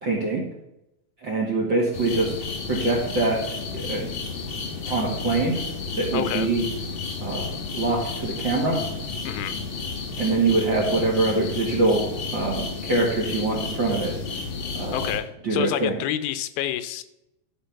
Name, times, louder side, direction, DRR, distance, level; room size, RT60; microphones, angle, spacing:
voice 1, 0.0-0.4 1.2-2.3 2.7-3.4 3.7-4.1 4.9-5.6 6.0-6.6 7.2-7.5 7.7-8.8 10.2-14.1 14.7-15.1 15.4-16.0, right 3 dB, 45° right, 0 dB, 1.6 m, -24 dB
sound 1, 1.9-15.2, left 4 dB, 70° left, 1.2 m, -32 dB
voice 2, 6.1-6.5 9.2-9.5 14.9-17.0, left 12 dB, 85° left, 13 dB, 2.6 m, -28 dB
13.0 x 5.3 x 5.8 m, 0.88 s
omnidirectional pair, 4.3 m